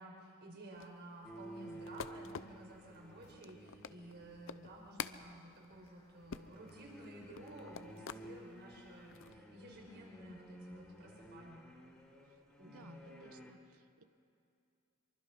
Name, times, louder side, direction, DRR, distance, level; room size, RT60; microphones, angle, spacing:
voice 1, 0.0-11.7 12.6-13.1, right 1 dB, 55° right, -1 dB, 5.0 m, -53 dB
sound 1, 0.7-8.3 8.8-9.3, left 6 dB, 65° left, 0.7 m, -48 dB
sound 2, 1.2-4.8 6.1-13.5, right 1 dB, 5° left, 2.5 m, -54 dB
sound 3, 1.7-11.3, equal, 20° left, 2.5 m, -71 dB
voice 2, 12.7-14.0, right 3 dB, 85° right, 9 dB, 1.2 m, -60 dB
24.5 x 23.5 x 5.4 m, 2.5 s
head